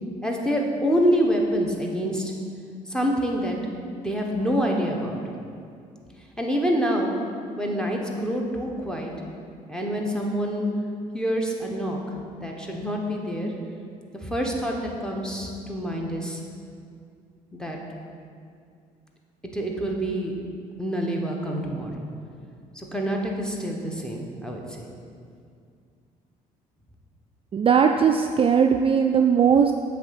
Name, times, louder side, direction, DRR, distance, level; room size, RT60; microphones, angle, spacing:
voice 1, 0.2-2.3 2.9-3.6 3.9-5.2 6.4-7.1 7.6-9.1 9.7-10.7 11.1-12.0 12.4-13.5 14.1-16.4 17.5-17.8 19.5-20.3 20.8-22.1 22.7-24.8, equal, 5° left, -1 dB, 1.2 m, -26 dB
voice 2, 27.5-29.7, right 7 dB, 35° right, 4 dB, 0.3 m, -19 dB
7.7 x 3.5 x 5.8 m, 2.3 s
supercardioid pair, 70°, 16 cm